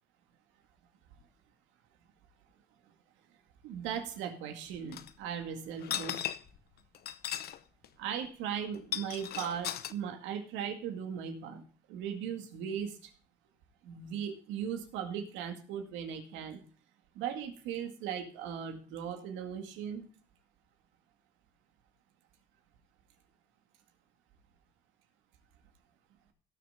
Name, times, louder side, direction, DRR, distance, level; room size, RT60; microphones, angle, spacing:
voice 1, 3.6-6.2 8.0-11.6 11.9-13.0 13.8-16.6 17.2-20.1, right 8 dB, 80° right, 6 dB, 2.1 m, -38 dB
sound 1, 4.9-5.1 5.8-6.6 6.9-7.6 7.8-7.9 8.7-9.9, left 11 dB, 55° left, 0.7 m, -37 dB
17.5 x 6.6 x 3.7 m, 0.40 s
supercardioid pair, 75°, 19 cm